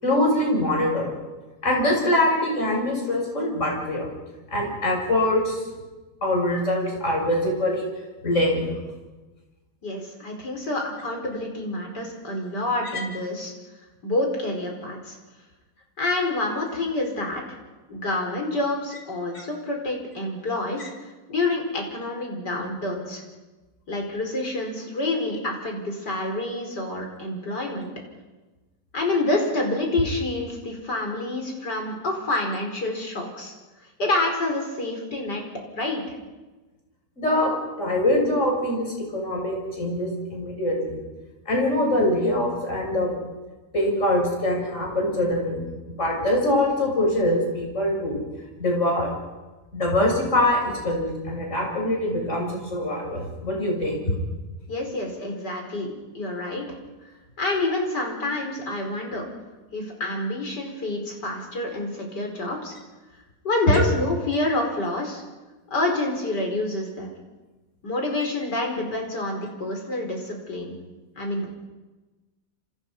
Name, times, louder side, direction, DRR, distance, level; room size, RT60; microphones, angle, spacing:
voice 1, 0.0-1.1 1.6-4.1 4.5-5.7 6.2-7.8 8.2-8.8 19.3-19.4 20.8-20.9 37.2-37.5 37.8-41.0 41.5-43.1 43.7-45.7 46.0-48.2 48.6-49.1 49.7-54.0 63.7-63.9, left 1 dB, 45° left, 0 dB, 7.8 m, -23 dB
voice 2, 9.8-13.5 14.0-15.2 16.0-17.6 17.9-20.9 21.3-23.2 23.9-27.9 28.9-33.5 34.0-35.4 35.7-36.1 54.7-56.6 57.4-59.2 59.7-62.7 63.4-65.2 65.7-67.1 67.8-70.7 71.2-71.5, left 2 dB, 85° left, 2 dB, 5.5 m, -28 dB
28.0 x 27.0 x 5.6 m, 1.2 s
omnidirectional pair, 1.8 m